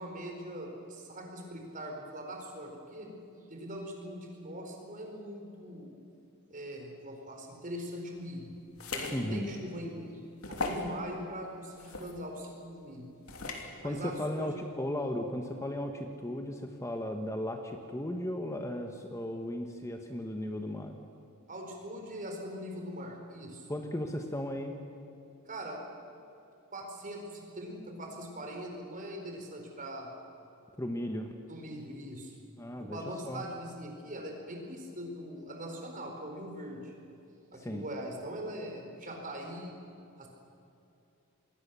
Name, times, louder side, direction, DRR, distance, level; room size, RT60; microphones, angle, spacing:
voice 1, 0.0-3.1 3.5-5.9 6.5-8.5 8.9-13.1 13.5-14.5 21.5-23.7 25.5-25.8 26.7-30.1 31.5-32.3 32.8-36.9 37.5-39.7 40.2-40.3, equal, 40° right, 2 dB, 4.6 m, -42 dB
sound 1, 8.8-9.2 9.7-9.8 10.4-10.9 11.8-12.1 13.3-13.7, left 3 dB, 70° left, 3.0 m, -36 dB
voice 2, 9.1-9.5 13.8-21.0 23.7-24.7 30.8-31.3 32.6-33.0 33.2-33.4 37.5-37.8, left 1 dB, 15° left, 4 dB, 1.3 m, -36 dB
27.0 x 21.0 x 7.0 m, 2.7 s
head